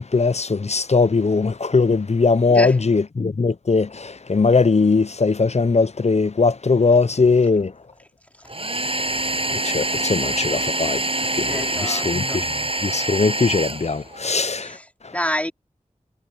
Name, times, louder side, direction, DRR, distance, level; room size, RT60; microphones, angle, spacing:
voice 1, 0.0-7.7 9.5-11.1 11.3-12.5 12.8-14.8, left 4 dB, 50° left, 0.5 m, -20 dB
voice 2, 2.5-2.8 8.4-8.5 11.5-12.4 12.9-13.1 14.4-15.5, equal, 10° left, 3.6 m, -29 dB
Domestic sounds home sounds, 8.5-14.3, right 2 dB, 45° right, 7.2 m, -25 dB
wide cardioid pair, 55°, 14 cm